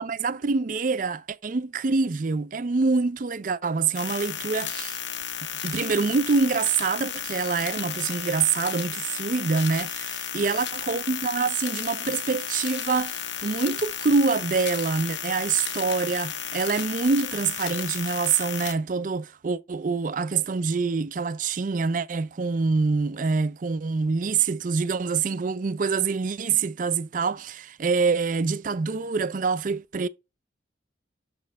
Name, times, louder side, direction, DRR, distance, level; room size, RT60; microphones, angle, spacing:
voice 1, 0.0-5.0 5.6-30.1, right 4 dB, 45° right, 0.4 m, -25 dB
sound 1, 3.9-18.7, left 9 dB, 75° left, 1.3 m, -33 dB
6.4 x 4.3 x 5.6 m
head